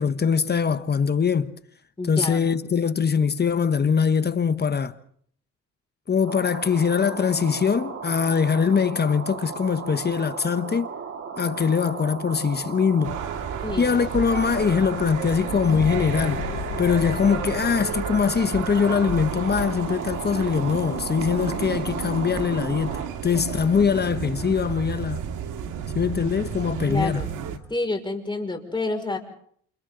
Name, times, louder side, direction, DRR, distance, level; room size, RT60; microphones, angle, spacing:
voice 1, 0.0-1.5 2.1-4.9 6.1-10.9 11.4-13.2 13.8-16.5 16.8-25.2 25.9-27.2, left 6 dB, 35° left, 1.0 m, -22 dB
voice 2, 2.0-2.4 13.6-13.9 26.9-27.3 27.7-29.2, left 2 dB, 15° left, 5.4 m, -28 dB
sound 1, 6.2-23.1, right 6 dB, 55° right, 4.2 m, -36 dB
sound 2, 13.0-27.6, right 8 dB, 85° right, 2.0 m, -32 dB
sound 3, 15.6-17.8, left 12 dB, 70° left, 0.9 m, -33 dB
29.5 x 29.0 x 3.8 m
cardioid pair, 90°, 30 cm